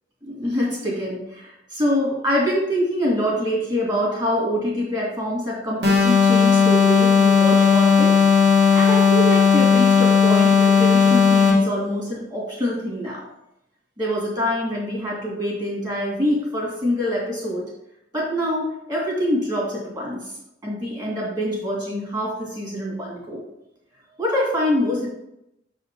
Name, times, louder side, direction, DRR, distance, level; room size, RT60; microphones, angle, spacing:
voice 1, 0.2-8.2 8.7-13.3 14.0-17.6 18.1-20.2 20.6-23.4 24.2-25.1, equal, 25° right, -3 dB, 2.7 m, -25 dB
sound 1, 5.8-11.7, left 6 dB, 65° right, 2.2 m, -15 dB
6.5 x 4.9 x 4.7 m, 0.84 s
head